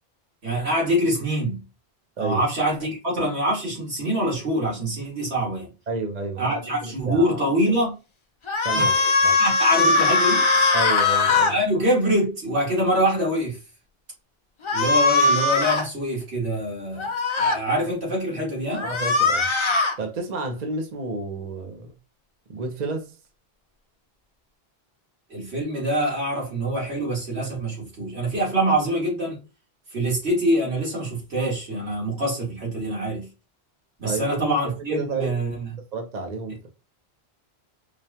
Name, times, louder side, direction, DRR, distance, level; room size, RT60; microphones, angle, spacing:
voice 1, 0.4-1.6 2.2-5.7 6.4-8.0 8.7-10.7 11.5-13.6 14.7-17.1 17.4-18.8 25.3-29.4 29.9-33.3 34.0-35.7, right 1 dB, 90° right, 2.3 m, -25 dB
voice 2, 5.9-7.4 8.6-9.4 10.7-11.5 18.8-19.5 20.0-21.9 22.5-23.1 34.0-35.3 35.9-36.7, right 3 dB, 45° right, 0.9 m, -31 dB
sound 1, 8.5-11.5 14.6-15.9 17.0-17.6 18.7-19.9, left 3 dB, 40° left, 0.5 m, -20 dB
5.0 x 2.3 x 2.7 m
omnidirectional pair, 1.1 m